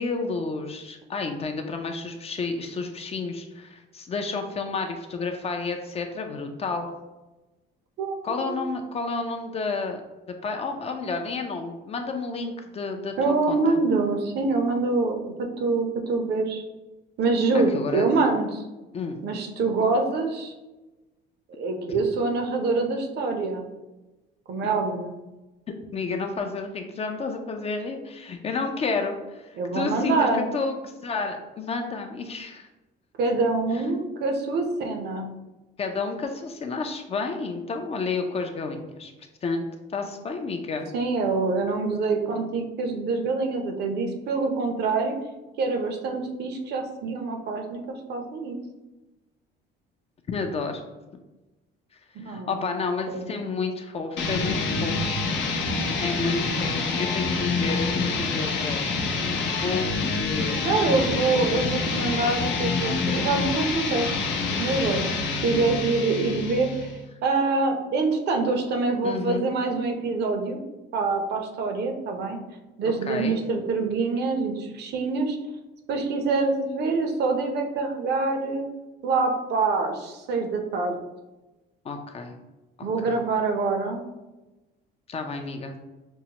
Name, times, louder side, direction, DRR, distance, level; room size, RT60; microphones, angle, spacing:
voice 1, 0.0-6.9 8.2-10.0 10.4-13.8 17.7-18.1 18.9-19.2 21.9-22.0 25.9-32.7 35.8-39.1 39.4-39.7 39.9-40.8 50.3-50.8 52.3-55.1 56.0-59.1 59.4-59.9 60.3-60.9 69.0-69.5 73.1-73.4 81.8-82.3 82.8-83.2 85.1-85.7, left 4 dB, 30° left, 5 dB, 0.4 m, -31 dB
voice 2, 8.0-8.6 13.2-16.6 17.2-18.6 19.2-20.5 21.5-23.7 24.5-25.1 29.6-30.5 33.2-35.3 40.9-45.2 45.6-47.8 48.1-48.6 52.1-52.6 53.1-53.3 60.6-64.1 64.6-65.2 65.4-66.9 67.2-70.6 70.9-72.4 72.8-75.4 75.9-78.6 79.0-81.0 82.8-84.1, right 3 dB, 60° right, 4 dB, 0.7 m, -25 dB
sound 1, 54.2-67.0, left 3 dB, 75° left, 0.7 m, -27 dB
5.4 x 2.0 x 2.9 m, 1.1 s
cardioid pair, 115°, 19 cm